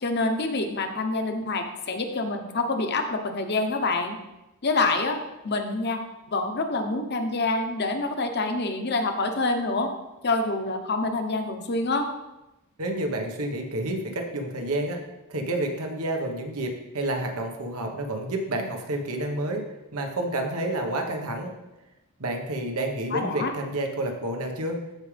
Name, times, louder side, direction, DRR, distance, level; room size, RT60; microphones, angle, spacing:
voice 1, 0.0-4.2 4.6-5.2 5.4-9.9 10.2-12.1 23.1-23.5, left 3 dB, 50° left, 5 dB, 1.0 m, -26 dB
voice 2, 12.8-15.0 15.3-19.6 19.9-21.6 22.2-24.8, right 1 dB, 80° right, 3 dB, 1.3 m, -29 dB
14.5 x 5.0 x 3.4 m, 0.96 s
head